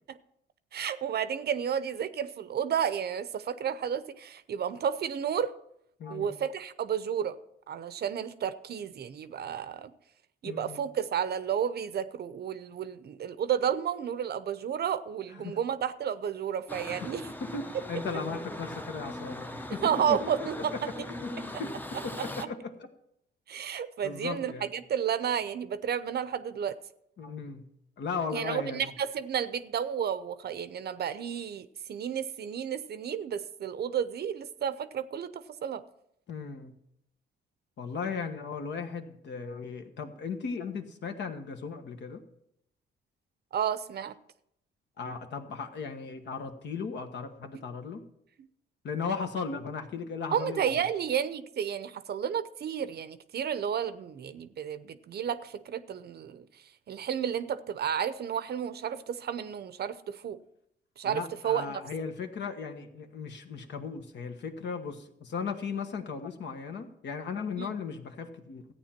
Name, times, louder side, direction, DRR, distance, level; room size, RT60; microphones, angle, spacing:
voice 1, 0.7-5.5 6.1-7.4 7.7-9.9 10.4-17.3 19.8-20.7 23.5-26.8 28.3-35.8 43.5-44.1 50.3-56.5 56.9-60.4 61.0-61.8 67.6-67.7, right 8 dB, 55° right, 13 dB, 0.7 m, -32 dB
voice 2, 6.0-6.4 10.4-10.8 15.4-15.6 16.9-17.1 17.4-22.9 24.0-24.7 27.2-27.7 28.0-28.9 36.3-36.8 37.8-42.2 45.0-48.0 48.8-50.8 61.0-68.7, left 5 dB, 65° left, 6 dB, 1.4 m, -37 dB
sound 1, 16.7-22.5, left 1 dB, 10° left, 0.7 m, -40 dB
14.0 x 9.0 x 4.4 m, 0.77 s
cardioid pair, 90°, 20 cm